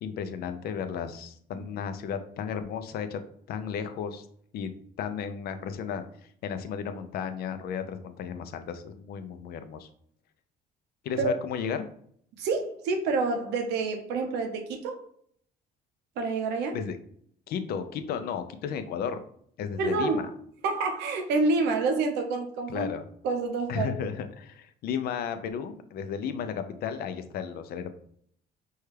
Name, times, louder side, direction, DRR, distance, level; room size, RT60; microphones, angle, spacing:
voice 1, 0.0-3.2 3.5-4.2 4.5-4.7 5.0-6.0 6.4-9.9 11.0-11.9 16.7-17.0 17.5-19.2 19.6-20.3 22.7-23.0 23.7-27.9, left 7 dB, 65° left, 9 dB, 0.5 m, -34 dB
voice 2, 12.4-15.0 16.2-16.8 19.8-20.2 20.6-22.9 23.2-24.0, right 3 dB, 85° right, 4 dB, 0.7 m, -28 dB
5.4 x 2.3 x 3.2 m, 0.65 s
cardioid pair, 110°, 17 cm